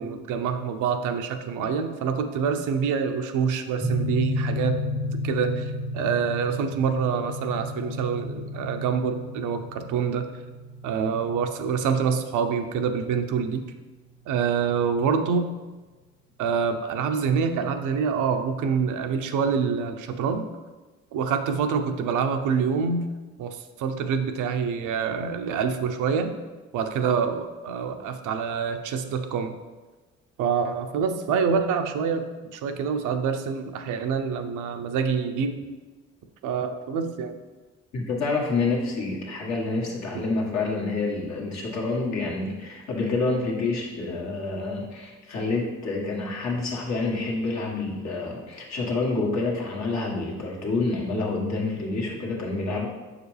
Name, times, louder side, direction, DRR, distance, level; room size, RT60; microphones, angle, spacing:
voice 1, 0.0-4.7 5.2-10.3 10.8-13.6 14.3-15.5 16.4-20.5 21.1-23.1 23.4-26.3 26.7-29.5 30.4-32.2 32.5-35.6 36.4-37.3, right 6 dB, 80° right, 7 dB, 0.6 m, -26 dB
sound 1, 3.8-14.0, left 1 dB, 5° left, 0.7 m, -33 dB
voice 2, 37.9-52.9, left 3 dB, 65° left, -2 dB, 1.5 m, -28 dB
6.2 x 4.9 x 3.3 m, 1.2 s
cardioid pair, 90°, 30 cm